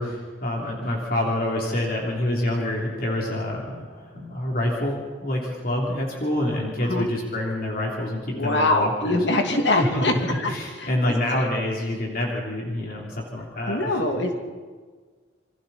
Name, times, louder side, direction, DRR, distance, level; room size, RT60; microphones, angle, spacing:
voice 1, 0.0-9.2 9.8-13.9, left 1 dB, 50° left, -2 dB, 3.3 m, -27 dB
voice 2, 8.3-10.1 10.4-10.5 11.1-11.4 13.7-14.3, left 2 dB, 70° left, 3 dB, 2.4 m, -23 dB
28.0 x 23.5 x 4.3 m, 1.5 s
head